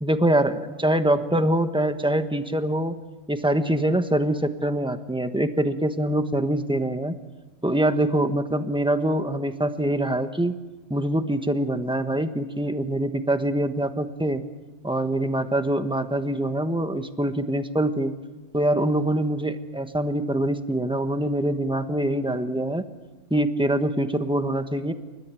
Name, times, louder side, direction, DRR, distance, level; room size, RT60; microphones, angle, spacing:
voice 1, 0.0-2.9 3.3-7.2 7.6-10.6 10.9-14.4 14.8-18.1 18.5-22.8 23.3-24.9, right 1 dB, 5° right, 7 dB, 1.2 m, -24 dB
29.5 x 14.0 x 9.1 m, 1.2 s
omnidirectional pair, 1.3 m